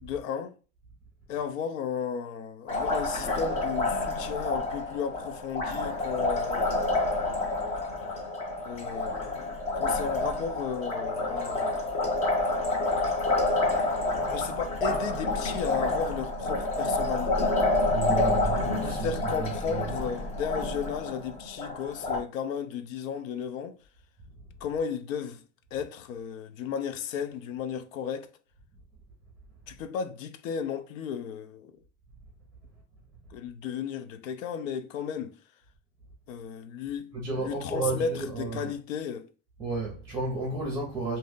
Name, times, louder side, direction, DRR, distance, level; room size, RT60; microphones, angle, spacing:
voice 1, 0.0-0.5 1.3-6.7 8.6-11.8 14.3-17.6 18.8-23.8 24.6-25.4 25.7-28.3 29.7-31.8 33.3-35.4 36.3-39.3, left 7 dB, 90° left, 0.7 m, -34 dB
Liquid, 2.7-22.2, left 2 dB, 15° left, 0.4 m, -28 dB
voice 2, 17.9-19.9 37.1-38.7 39.6-41.2, right 3 dB, 5° right, 0.8 m, -32 dB
2.8 x 2.5 x 3.7 m
supercardioid pair, 160°, 38 cm